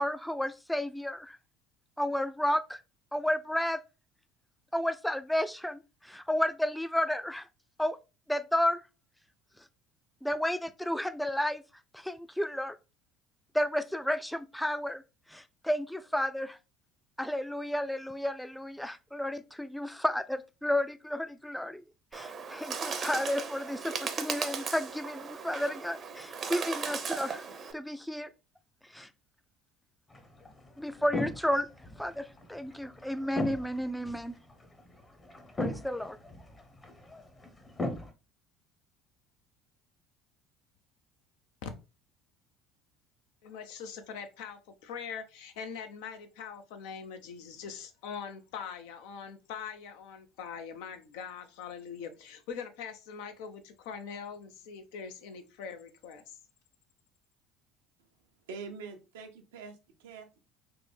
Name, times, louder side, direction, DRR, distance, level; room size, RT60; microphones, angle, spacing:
voice 1, 0.0-1.4 2.0-2.8 3.1-3.8 4.7-7.5 7.8-8.0 8.3-8.8 10.2-11.6 11.9-12.8 13.5-15.0 15.3-16.6 17.2-21.8 22.1-27.4 27.7-28.3 28.9-29.1 30.8-31.7 32.0-34.3 35.6-36.2, left 1 dB, 5° left, 0.3 m, -32 dB
Bird, 22.1-27.7, right 5 dB, 40° right, 0.6 m, -37 dB
sound 1, 30.1-38.1, left 2 dB, 25° left, 0.7 m, -39 dB
voice 2, 43.4-56.4, left 6 dB, 75° left, 0.4 m, -42 dB
voice 3, 58.5-60.4, right 5 dB, 85° right, 0.6 m, -45 dB
3.3 x 2.0 x 3.2 m
hypercardioid pair, 75°, 0 cm